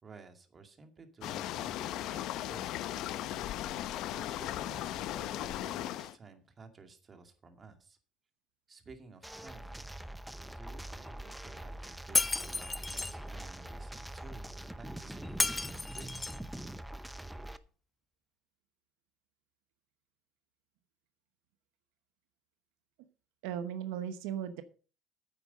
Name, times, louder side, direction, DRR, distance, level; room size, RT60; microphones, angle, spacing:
voice 1, 0.0-2.7 4.1-8.0 8.7-9.8 10.4-16.3, right 4 dB, 30° right, 6 dB, 2.2 m, -54 dB
sound 1, 1.2-6.1, left 13 dB, 65° left, 0.7 m, -37 dB
sound 2, 9.2-17.6, right 1 dB, 5° right, 0.8 m, -44 dB
Shatter, 12.1-13.1 15.4-16.4, left 3 dB, 15° left, 0.4 m, -32 dB
voice 2, 23.4-24.6, right 9 dB, 85° right, 10 dB, 1.0 m, -36 dB
9.6 x 8.4 x 5.3 m, 0.38 s
cardioid pair, 110°, 0 cm